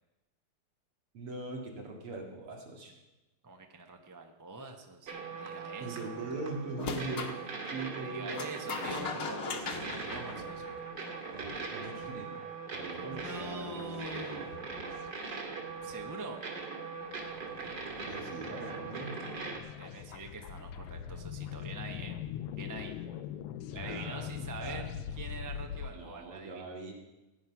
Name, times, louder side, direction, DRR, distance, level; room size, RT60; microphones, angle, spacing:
voice 1, 1.1-2.9 5.8-7.3 7.7-8.4 11.3-12.3 12.7-14.0 18.1-19.2 23.8-24.9 25.9-26.9, right 3 dB, 85° right, 1 dB, 3.2 m, -41 dB
voice 2, 3.4-6.1 7.9-10.8 13.0-14.5 15.8-16.4 19.8-22.2 22.5-22.9 23.7-26.6, right 3 dB, 20° right, 4 dB, 0.4 m, -44 dB
sound 1, 5.1-19.6, right 4 dB, 50° right, 3.0 m, -41 dB
sound 2, 6.8-7.4 8.4-11.1, left 4 dB, 45° left, 1.4 m, -38 dB
sound 3, 8.7-9.1 9.5-10.7 11.0-11.1 11.3-16.2 16.6-16.7 17.1-25.9, left 9 dB, 85° left, 1.7 m, -43 dB
16.0 x 9.5 x 5.9 m, 1.0 s
omnidirectional pair, 2.4 m